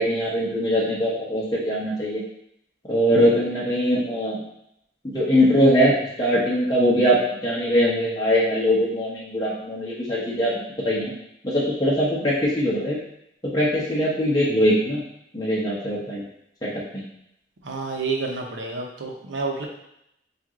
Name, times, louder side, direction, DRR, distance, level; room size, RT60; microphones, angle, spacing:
voice 1, 0.0-2.2 2.9-4.4 5.0-7.2 7.4-11.1 11.4-13.0 13.4-15.0 15.3-16.2 16.6-17.0, equal, 20° left, -7 dB, 0.8 m, -22 dB
voice 2, 17.6-19.6, right 4 dB, 85° right, 0 dB, 0.8 m, -29 dB
4.6 x 2.5 x 3.7 m, 0.78 s
head